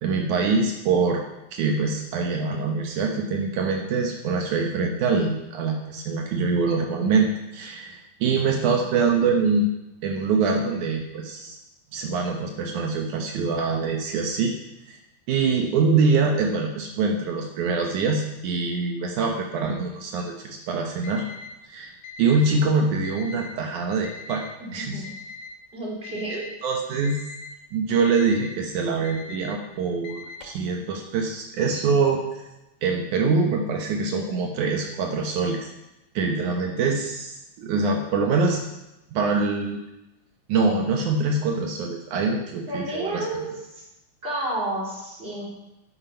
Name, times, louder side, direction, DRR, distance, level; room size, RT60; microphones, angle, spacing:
voice 1, 0.0-9.7 10.0-11.6 11.9-14.5 14.9-15.0 15.3-21.3 21.6-21.9 22.2-24.4 24.7-25.0 26.3-27.2 27.7-32.4 32.8-35.7 36.1-38.6 39.1-39.8 40.5-43.4, right 4 dB, 75° right, 2 dB, 2.5 m, -24 dB
Alarm, 21.0-21.5 22.0-22.5 23.0-23.5 24.0-24.5 25.0-25.5 26.0-26.5 27.0-27.5 28.0-28.5 29.0-29.5 30.0-30.6, left 6 dB, 75° left, 3.2 m, -40 dB
voice 2, 24.6-25.1 25.7-26.4 42.7-43.8 44.2-45.5, right 1 dB, 15° right, -4 dB, 3.5 m, -31 dB
13.0 x 9.1 x 5.7 m, 0.93 s
omnidirectional pair, 3.6 m